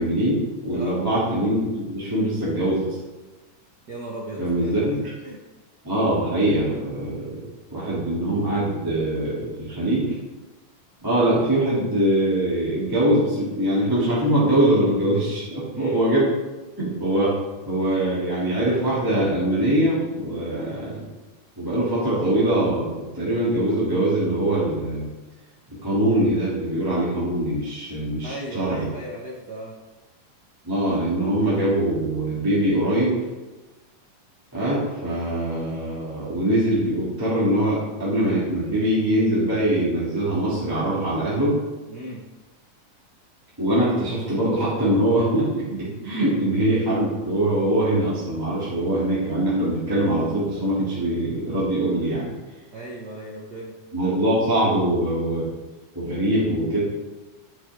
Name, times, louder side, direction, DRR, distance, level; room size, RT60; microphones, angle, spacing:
voice 1, 0.0-3.0 4.4-5.0 5.8-7.4 7.7-10.1 11.0-16.3 16.8-17.4 17.7-21.1 21.6-25.1 25.7-28.9 30.6-33.2 34.5-41.6 43.6-52.3 53.9-55.5 55.9-56.8, right 1 dB, 5° right, -9 dB, 2.6 m, -23 dB
voice 2, 3.9-4.7 5.2-5.4 15.7-16.0 28.2-29.8 41.9-42.2 52.7-53.8, right 1 dB, 50° right, -4 dB, 1.2 m, -36 dB
13.0 x 8.0 x 3.7 m, 1.2 s
omnidirectional pair, 3.6 m